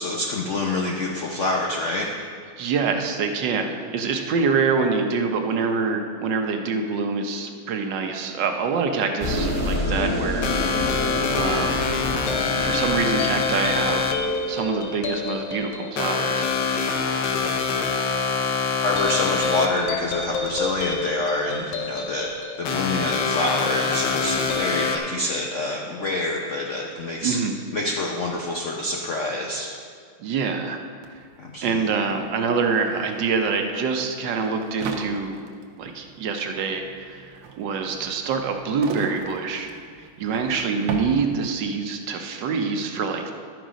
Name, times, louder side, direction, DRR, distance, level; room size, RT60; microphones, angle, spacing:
voice 1, 0.0-2.1 18.8-22.3 22.6-27.4 27.7-29.7 31.4-31.8, left 2 dB, 90° left, -1 dB, 0.6 m, -27 dB
voice 2, 2.6-10.8 11.4-11.8 12.6-14.1 14.5-16.9 27.2-27.6 30.2-30.8 31.1-31.2 31.6-35.4 35.8-39.7 40.2-43.3, right 5 dB, 65° right, 4 dB, 1.2 m, -25 dB
sound 1, 9.2-14.5, left 1 dB, 10° left, 1.6 m, -28 dB
sound 2, 10.4-25.0, left 5 dB, 65° left, 1.3 m, -25 dB
sound 3, 31.0-31.1 31.3-41.8, right 4 dB, 80° right, 1.7 m, -38 dB
11.5 x 6.4 x 5.1 m, 2.1 s
omnidirectional pair, 2.3 m